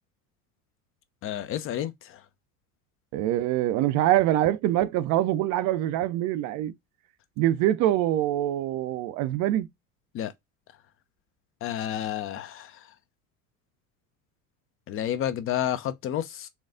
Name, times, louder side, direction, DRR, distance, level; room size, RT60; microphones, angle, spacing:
voice 1, 1.2-2.2 10.1-10.3 11.6-12.7 14.9-16.5, left 10 dB, 30° left, 0.4 m, -30 dB
voice 2, 3.1-6.7 7.4-9.7, right 13 dB, 45° right, 0.4 m, -24 dB
4.3 x 2.3 x 2.4 m
hypercardioid pair, 75°, 43 cm